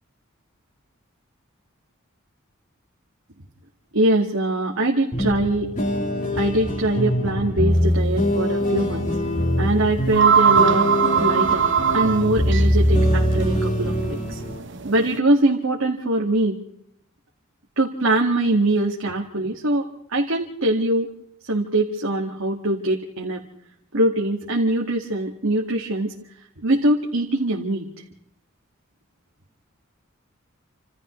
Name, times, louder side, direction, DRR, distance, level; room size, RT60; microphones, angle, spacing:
voice 1, 3.9-5.7 6.4-9.1 9.6-10.9 11.2-14.4 14.8-16.5 17.8-19.8 20.1-21.1 21.5-23.4 23.9-26.1 26.6-27.9, right 1 dB, 80° right, -1 dB, 2.0 m, -22 dB
sound 1, 5.1-14.6, equal, 40° left, 4.6 m, -23 dB
sound 2, 7.8-8.0 8.4-8.5 9.6-9.7 9.9-15.2, right 7 dB, 60° right, 1.1 m, -22 dB
29.5 x 27.5 x 3.2 m, 0.73 s
head